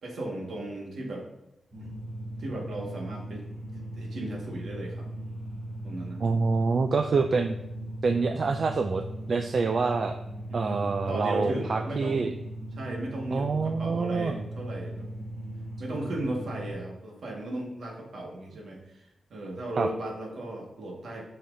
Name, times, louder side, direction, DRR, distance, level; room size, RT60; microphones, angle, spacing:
voice 1, 0.0-1.3 2.4-3.5 3.7-5.1 5.8-6.2 10.5-12.4 12.7-15.1 15.8-21.3, right 1 dB, 70° right, -1 dB, 1.7 m, -36 dB
sound 1, 1.7-16.7, right 1 dB, 25° right, 1.3 m, -38 dB
voice 2, 6.2-7.6 8.0-9.0 9.3-10.2 10.5-12.3 13.3-14.4 19.8-19.9, right 4 dB, 50° right, 6 dB, 0.4 m, -26 dB
8.2 x 5.9 x 2.7 m, 0.92 s
wide cardioid pair, 135°, 0 cm